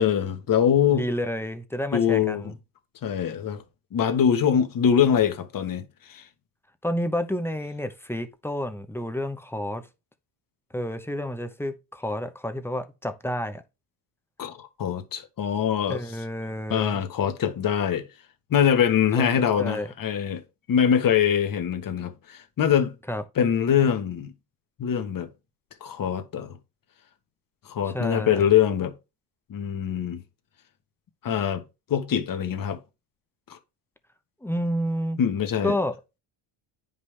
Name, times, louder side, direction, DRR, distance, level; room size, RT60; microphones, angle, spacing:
voice 1, 0.0-1.0 1.9-2.5 3.0-3.6 3.9-6.2 14.4-16.0 16.7-18.1 18.5-20.4 20.7-22.9 23.4-24.3 24.8-25.3 25.8-26.6 27.6-28.9 29.5-30.2 31.2-31.6 31.9-32.8 33.5-33.6 35.2-35.7, left 8 dB, 40° left, 1.3 m, -23 dB
voice 2, 0.9-2.6 6.8-9.8 10.7-13.6 15.9-17.0 19.1-19.3 19.6-19.9 23.1-23.2 27.8-28.4 34.4-35.2 35.6-36.0, equal, 5° left, 0.7 m, -30 dB
9.5 x 5.5 x 3.3 m
cardioid pair, 115°, 49 cm